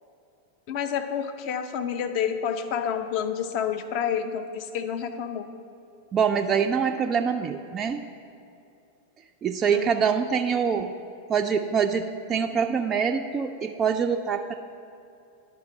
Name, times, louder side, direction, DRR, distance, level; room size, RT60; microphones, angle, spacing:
voice 1, 0.7-5.5 9.7-9.9, left 8 dB, 45° left, 7 dB, 0.6 m, -29 dB
voice 2, 6.1-8.0 9.4-10.9 11.3-14.5, right 6 dB, 25° right, 4 dB, 0.3 m, -25 dB
10.5 x 4.6 x 5.0 m, 2.6 s
figure-of-eight pair, 90°, 0 cm